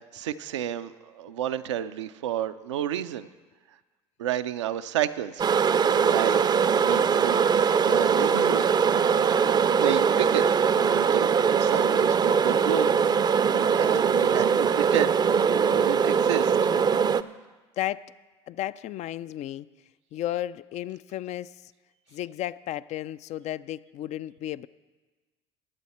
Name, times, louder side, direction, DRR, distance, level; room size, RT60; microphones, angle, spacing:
voice 1, 0.1-3.3 4.2-5.4 5.8-6.4 6.8-7.5 7.8-8.6 9.8-10.6 10.9-12.9 13.7-15.2 15.5-16.5, right 11 dB, 85° right, 0.5 m, -31 dB
sound 1, 5.4-17.2, right 6 dB, 30° right, 0.5 m, -22 dB
voice 2, 17.8-18.1 18.5-19.7 20.1-21.7 22.1-24.7, left 13 dB, 50° left, 0.4 m, -33 dB
21.0 x 7.7 x 4.3 m
hypercardioid pair, 70°, 15 cm